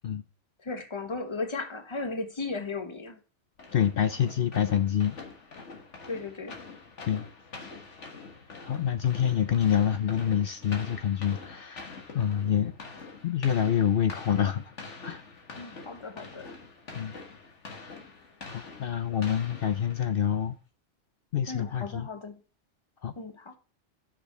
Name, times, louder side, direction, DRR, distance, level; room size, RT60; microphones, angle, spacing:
voice 1, 0.6-3.2 6.1-6.6 15.6-16.6 21.5-22.4 23.2-23.6, left 3 dB, 25° left, 1.1 m, -36 dB
sound 1, 3.6-20.4, left 4 dB, 75° left, 1.9 m, -45 dB
voice 2, 3.7-5.2 7.0-7.3 8.6-12.7 13.2-14.7 15.0-15.2 16.9-17.1 18.5-20.5 21.3-22.1 23.0-23.1, left 9 dB, 60° left, 0.7 m, -27 dB
6.2 x 5.1 x 6.8 m
omnidirectional pair, 1.2 m